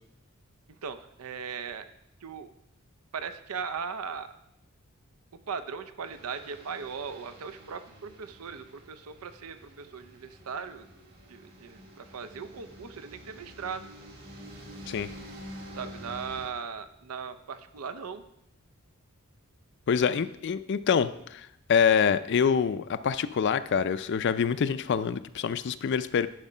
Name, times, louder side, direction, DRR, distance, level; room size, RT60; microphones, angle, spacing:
voice 1, 0.8-1.8 2.2-2.5 3.1-4.4 5.5-10.9 11.3-13.8 15.8-18.2, right 6 dB, 80° right, 11 dB, 0.6 m, -38 dB
sound 1, 6.0-16.5, equal, 45° right, 2.3 m, -48 dB
voice 2, 19.9-26.3, left 7 dB, 50° left, 13 dB, 0.4 m, -26 dB
11.0 x 5.0 x 5.5 m, 0.80 s
head